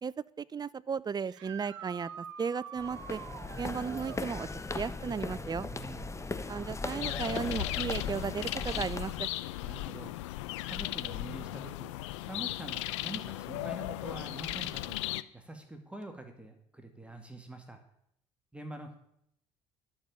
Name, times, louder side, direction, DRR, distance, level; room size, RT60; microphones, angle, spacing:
voice 1, 0.0-3.2 3.6-4.5 4.7-5.7 6.5-9.3, right 6 dB, 25° right, 20 dB, 0.5 m, -35 dB
sound 1, 1.3-4.2 7.6-7.7 9.7-9.8 16.0-16.1, right 8 dB, 85° right, 1.0 m, -45 dB
sound 2, 2.8-9.3, left 3 dB, 20° left, 1.2 m, -38 dB
voice 2, 5.6-6.2 9.6-10.1 10.6-11.9 12.2-15.0 15.3-17.8 18.5-19.0, right 2 dB, 5° right, 5 dB, 2.2 m, -45 dB
sound 3, 7.0-15.2, left 16 dB, 80° left, 0.5 m, -36 dB
11.5 x 6.9 x 8.7 m, 0.72 s
hypercardioid pair, 60°, 15 cm